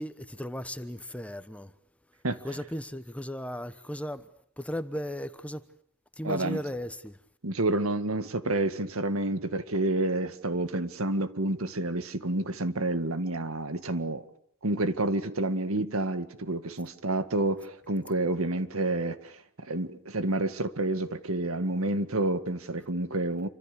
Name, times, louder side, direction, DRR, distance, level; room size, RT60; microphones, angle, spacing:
voice 1, 0.0-1.7 2.4-4.3 4.6-5.6 6.2-7.2, equal, 5° left, 1.1 m, -36 dB
voice 2, 6.2-6.6 7.4-14.2 14.6-23.5, right 2 dB, 75° right, 1.9 m, -29 dB
28.0 x 25.5 x 6.9 m
head